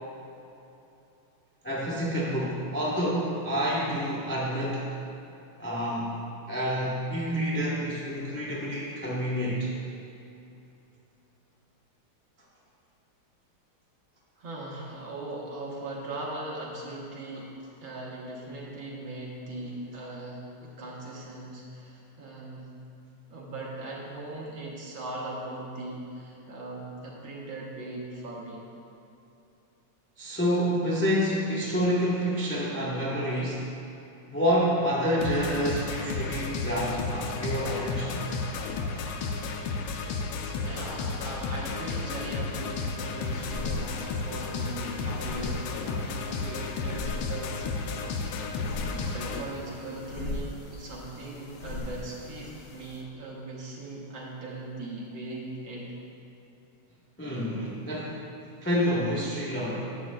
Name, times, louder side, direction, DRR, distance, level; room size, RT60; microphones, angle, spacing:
voice 1, 1.6-4.9 5.6-9.7 30.2-33.7 34.3-38.3 57.2-58.2 58.6-60.0, equal, 20° left, -5 dB, 0.3 m, -28 dB
voice 2, 14.4-17.5 17.8-22.7 23.3-28.7 40.0-48.1 48.6-55.9, right 2 dB, 75° right, -4 dB, 1.9 m, -39 dB
sound 1, 35.2-49.4, left 4 dB, 85° left, 1.4 m, -33 dB
sound 2, 43.2-53.0, left 2 dB, 70° left, 1.2 m, -40 dB
9.8 x 7.2 x 2.2 m, 2.8 s
omnidirectional pair, 2.2 m